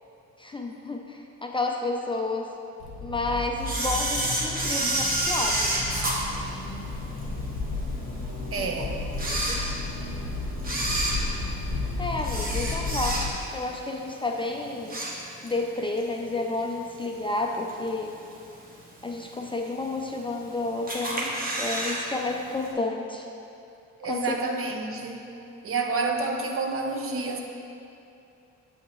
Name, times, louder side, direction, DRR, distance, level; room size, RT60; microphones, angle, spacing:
voice 1, 0.4-2.5 3.0-5.8 8.6-8.7 9.3-9.8 12.0-13.2 13.5-15.0 15.4-18.2 19.0-23.3 24.1-24.3, left 2 dB, 15° left, 1 dB, 0.4 m, -31 dB
Accelerating revving vroom, 2.8-13.3, left 3 dB, 85° left, 1.0 m, -33 dB
Camera, 3.6-7.2 7.7-7.8 8.5-8.6 9.1-10.1 10.6-13.6 13.9-14.2 14.6-15.6 16.0-16.1 17.0-17.1 17.7-18.1 18.5-18.6 18.8-18.9 19.1-19.2 19.9-20.5 20.9-22.0 22.3-22.4 22.7-22.8, right 1 dB, 30° right, 1.1 m, -29 dB
voice 2, 8.5-9.2 24.0-25.4 25.6-27.4, right 3 dB, 45° right, 3 dB, 0.7 m, -29 dB
7.3 x 5.3 x 3.0 m, 2.7 s
cardioid pair, 90°, 30 cm